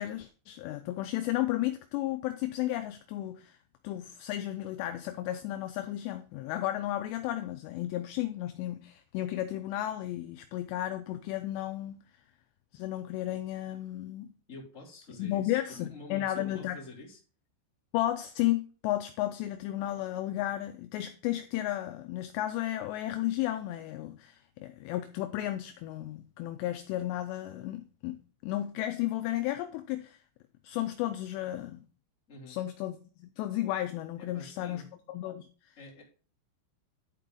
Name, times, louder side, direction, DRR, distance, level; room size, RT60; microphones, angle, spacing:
voice 1, 0.0-3.6 3.8-12.0 12.7-14.3 15.2-16.8 17.9-30.2 30.6-31.8 32.5-35.5, left 14 dB, 85° left, 2.5 m, -33 dB
voice 2, 14.5-17.2 32.3-32.6 34.2-34.8 35.8-36.0, left 2 dB, 20° left, 2.4 m, -47 dB
11.5 x 4.6 x 3.7 m
omnidirectional pair, 5.4 m